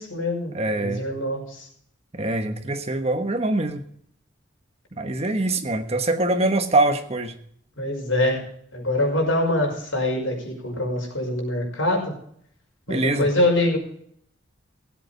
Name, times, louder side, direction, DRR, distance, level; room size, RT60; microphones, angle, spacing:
voice 1, 0.0-1.7 7.8-8.4 8.7-12.1 12.9-13.8, left 1 dB, 85° left, -1 dB, 5.6 m, -24 dB
voice 2, 0.5-1.0 2.1-3.8 4.9-7.4 12.9-13.3, right 2 dB, 30° right, 7 dB, 1.2 m, -23 dB
17.0 x 8.2 x 5.1 m, 0.65 s
head